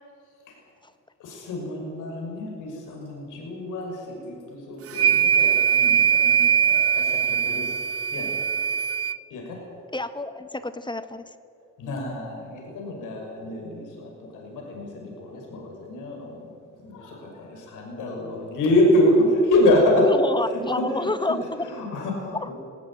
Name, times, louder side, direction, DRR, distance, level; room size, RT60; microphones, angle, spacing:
voice 1, 1.2-7.7 8.1-8.3 9.3-9.6 11.8-16.4 16.8-20.1 20.5-22.5, left 1 dB, 90° left, 0 dB, 6.1 m, -26 dB
sound 1, 4.9-9.2, right 8 dB, 50° right, 0.7 m, -21 dB
voice 2, 9.9-11.2 20.0-21.4 22.4-22.5, left 2 dB, 15° left, 11 dB, 1.5 m, -28 dB
20.0 x 18.0 x 8.9 m, 2.4 s
cardioid pair, 90°, 30 cm